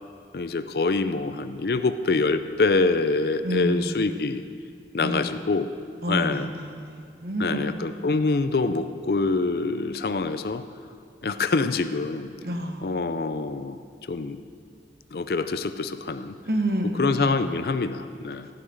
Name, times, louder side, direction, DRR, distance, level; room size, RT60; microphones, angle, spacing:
voice 1, 0.3-4.4 4.9-5.7 6.1-6.5 7.4-10.6 11.2-12.3 12.8-13.8 14.1-14.4 15.1-16.4 17.0-18.5, left 3 dB, 60° left, 11 dB, 0.5 m, -25 dB
voice 2, 3.4-4.1 5.0-5.4 6.0-8.0 12.4-13.1 16.5-17.4, right 1 dB, 60° right, 4 dB, 1.1 m, -29 dB
14.5 x 6.0 x 7.8 m, 2.3 s
head